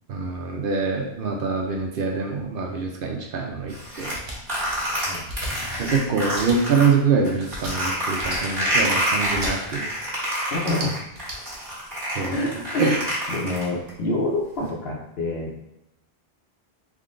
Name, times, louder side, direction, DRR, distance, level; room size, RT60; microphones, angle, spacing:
voice 1, 0.1-4.2 5.8-9.9 10.2-10.3 12.1-12.4 12.8-13.0, right 5 dB, 65° right, 1 dB, 0.7 m, -24 dB
sound 1, 3.7-6.9 7.2-13.9, equal, 40° right, 1.4 m, -27 dB
sound 2, 4.1-4.4 5.2-5.5 6.3-6.6 7.5-7.7 8.2-8.4 9.3-9.5 10.5-11.4, right 1 dB, 85° right, 1.1 m, -34 dB
voice 2, 5.0-5.6 10.5-10.9 12.3-13.0 13.3-15.6, left 2 dB, 70° left, -1 dB, 1.0 m, -27 dB
3.6 x 2.2 x 3.6 m, 0.88 s
omnidirectional pair, 1.1 m